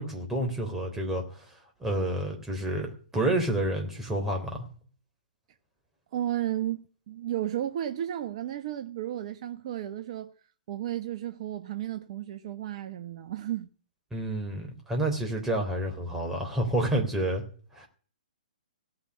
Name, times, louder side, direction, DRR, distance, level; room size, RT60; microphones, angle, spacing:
voice 1, 0.0-1.4 1.8-4.6 14.1-17.4 17.8-17.9, right 1 dB, 10° right, 3.5 m, -29 dB
voice 2, 6.1-10.3 10.7-13.7, right 12 dB, 45° right, 1.1 m, -33 dB
17.0 x 6.3 x 9.8 m
hypercardioid pair, 130°, 5 cm